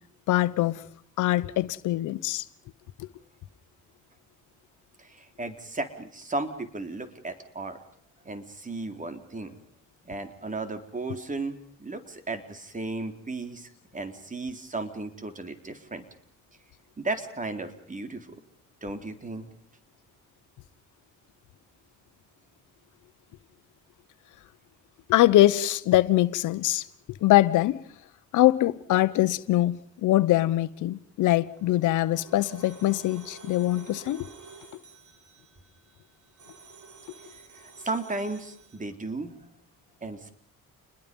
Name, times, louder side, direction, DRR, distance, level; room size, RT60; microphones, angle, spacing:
voice 1, 0.3-0.8 1.2-2.4 3.0-3.1 25.1-26.9 27.2-27.8 28.3-34.3, left 15 dB, 85° left, 1.1 m, -23 dB
voice 2, 5.0-7.8 8.2-9.6 10.0-16.0 17.0-18.4 18.8-19.5 37.5-39.3 40.0-40.3, right 2 dB, 25° right, 3.9 m, -35 dB
sound 1, 31.4-38.8, right 4 dB, 70° right, 7.5 m, -50 dB
29.5 x 21.0 x 5.5 m
cardioid pair, 90°, 30 cm